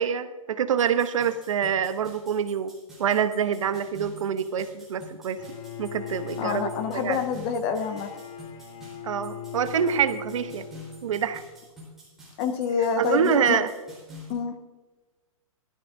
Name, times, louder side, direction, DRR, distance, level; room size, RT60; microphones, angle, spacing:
voice 1, 0.0-2.7 3.0-5.4 5.8-7.2 9.0-10.7 11.0-11.4 13.0-13.7, right 7 dB, 65° right, 11 dB, 0.9 m, -26 dB
sound 1, 0.8-14.3, left 1 dB, ahead, 4.1 m, -48 dB
Bowed string instrument, 5.4-11.5, left 8 dB, 60° left, 2.0 m, -40 dB
voice 2, 6.4-8.1 12.4-13.6 14.3-14.6, left 6 dB, 15° left, 8 dB, 0.4 m, -27 dB
16.0 x 13.5 x 2.7 m, 1.2 s
hypercardioid pair, 175°, 18 cm